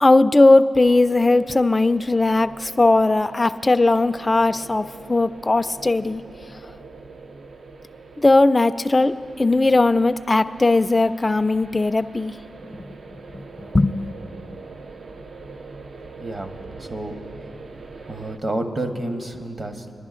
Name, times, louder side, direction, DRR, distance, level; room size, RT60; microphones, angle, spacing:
voice 1, 0.0-6.2 8.2-12.3 12.8-12.9 13.3-14.0, left 2 dB, 25° left, 12 dB, 0.3 m, -18 dB
sound 1, 0.8-18.4, right 3 dB, 60° right, 0.5 m, -43 dB
voice 2, 16.2-16.5 16.8-17.2 18.1-20.0, right 1 dB, 40° right, 5 dB, 1.0 m, -29 dB
24.0 x 11.0 x 2.5 m, 2.7 s
cardioid pair, 80°, 0 cm